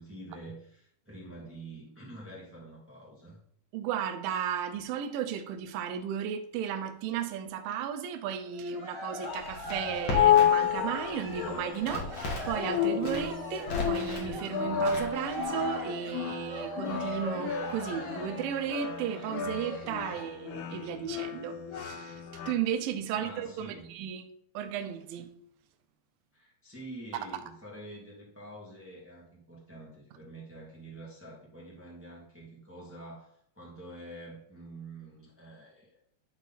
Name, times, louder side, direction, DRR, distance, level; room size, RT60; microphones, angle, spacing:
voice 1, 0.0-3.4 23.1-23.9 26.3-35.9, right 1 dB, 15° right, 0.5 m, -47 dB
voice 2, 3.7-24.3 24.5-25.3, right 8 dB, 75° right, 2.2 m, -34 dB
Cheering, 8.4-20.2, left 1 dB, 10° left, 1.2 m, -41 dB
Crackle, 9.2-10.7 11.0-12.6 12.9-14.3 14.8-15.4, left 2 dB, 50° left, 2.5 m, -36 dB
sound 1, 9.7-22.5, left 9 dB, 85° left, 2.5 m, -31 dB
11.5 x 4.1 x 4.1 m
omnidirectional pair, 4.7 m